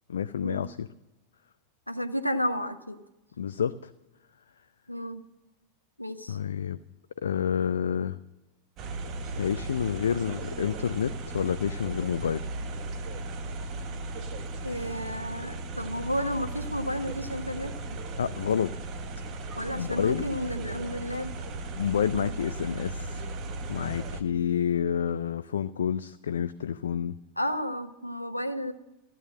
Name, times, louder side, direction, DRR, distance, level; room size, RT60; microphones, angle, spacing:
voice 1, 0.1-0.9 3.4-3.9 6.3-6.8 7.2-8.2 9.4-12.5 18.2-18.7 19.8-20.2 21.8-23.3 23.7-27.2, left 8 dB, 65° left, 12 dB, 0.4 m, -29 dB
voice 2, 1.9-3.0 4.9-5.3 6.0-6.4 14.6-17.7 19.5-21.3 22.1-22.3 27.4-28.7, equal, 90° left, 9 dB, 1.0 m, -32 dB
sound 1, 8.8-24.2, right 2 dB, 35° right, 1.3 m, -36 dB
15.5 x 9.2 x 7.5 m, 1.0 s
figure-of-eight pair, 90°, 0 cm